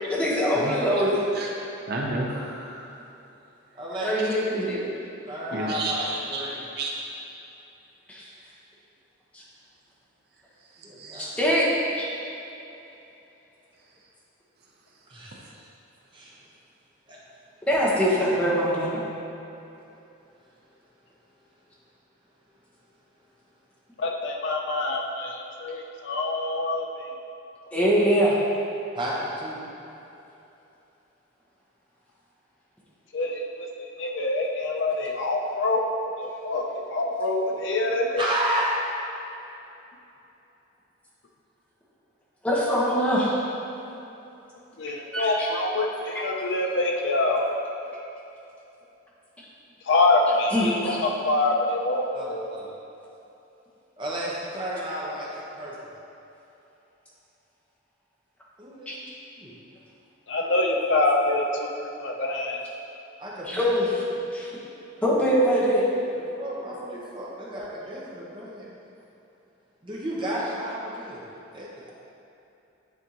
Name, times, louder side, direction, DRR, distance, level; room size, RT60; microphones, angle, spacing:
voice 1, 0.1-1.2 4.0-4.8 8.1-8.2 11.2-11.7 11.9-12.1 17.7-19.0 27.7-28.3 42.4-43.4 45.1-45.5 50.5-51.0 58.9-59.0 63.5-63.9 64.3-64.5 65.0-65.9, equal, 5° left, -8 dB, 1.0 m, -23 dB
voice 2, 1.9-2.9 5.5-6.4 6.7-6.9 11.0-11.2, right 2 dB, 50° right, -1 dB, 0.6 m, -31 dB
voice 3, 3.7-4.1 5.3-6.6 10.8-11.3 15.1-15.4 16.1-16.3 17.1-17.2 28.9-29.6 38.2-38.7 52.1-52.7 54.0-55.7 58.6-58.9 59.4-59.5 63.2-63.7 66.4-68.7 69.8-71.2 71.5-71.7, right 1 dB, 25° right, -6 dB, 0.9 m, -32 dB
voice 4, 24.0-27.1 33.1-38.3 44.8-47.5 49.9-52.4 60.3-62.6, left 2 dB, 65° left, 1 dB, 0.5 m, -25 dB
9.3 x 3.5 x 2.9 m, 2.9 s
head